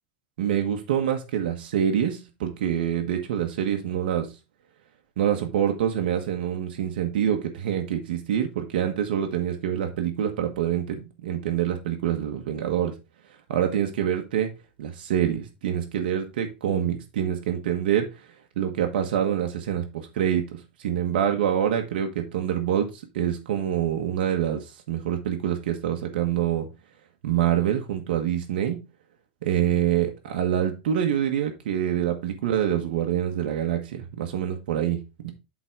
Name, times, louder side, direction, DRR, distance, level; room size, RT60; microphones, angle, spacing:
voice 1, 0.4-4.3 5.2-12.9 13.5-14.5 14.8-18.1 18.6-20.4 20.8-24.6 24.9-26.7 27.2-28.8 29.4-35.3, right 10 dB, 80° right, 1.5 m, -26 dB
7.9 x 3.9 x 4.8 m
supercardioid pair, 130°, 5 cm